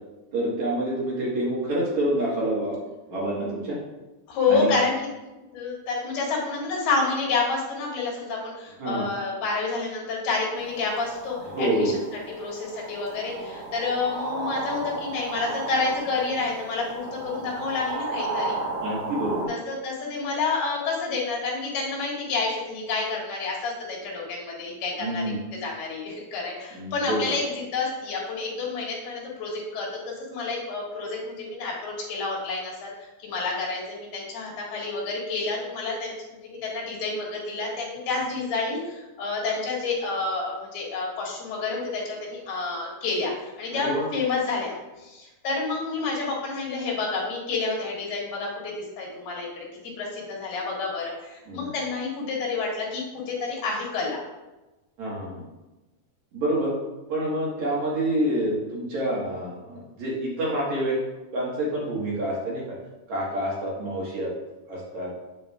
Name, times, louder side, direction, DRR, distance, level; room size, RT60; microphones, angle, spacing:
voice 1, 0.3-2.8 3.1-3.8 4.5-4.8 8.8-9.1 11.5-11.9 18.8-19.5 25.0-25.4 26.7-27.3 43.7-44.1 51.5-51.7 55.0-55.4 56.3-56.7 57.1-61.0 61.3-62.8 63.1-64.3 64.7-65.1, right 1 dB, 55° right, -6 dB, 2.4 m, -27 dB
voice 2, 4.3-5.0 5.5-11.9 12.4-18.6 19.5-25.2 25.5-54.2, left 4 dB, 80° left, -3 dB, 3.7 m, -29 dB
sound 1, 10.6-19.5, right 2 dB, 25° right, 2.1 m, -34 dB
8.3 x 7.6 x 2.4 m, 1.1 s
omnidirectional pair, 4.5 m